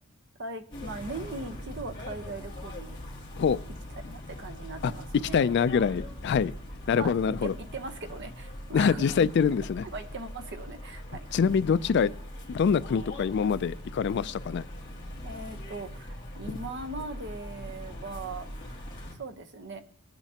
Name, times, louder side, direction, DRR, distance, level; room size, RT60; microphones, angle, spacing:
voice 1, 0.4-3.0 4.0-5.5 6.9-7.1 7.4-9.3 9.8-11.3 15.2-18.7 19.2-19.8, right 3 dB, 55° right, 6 dB, 0.9 m, -39 dB
sound 1, 0.7-19.2, equal, 25° left, 2.7 m, -41 dB
voice 2, 5.3-6.5 6.9-7.5 8.7-9.8 11.3-12.1 12.5-14.6 16.5-16.6, left 6 dB, 55° left, 16 dB, 0.3 m, -25 dB
18.5 x 8.9 x 2.9 m, 0.76 s
head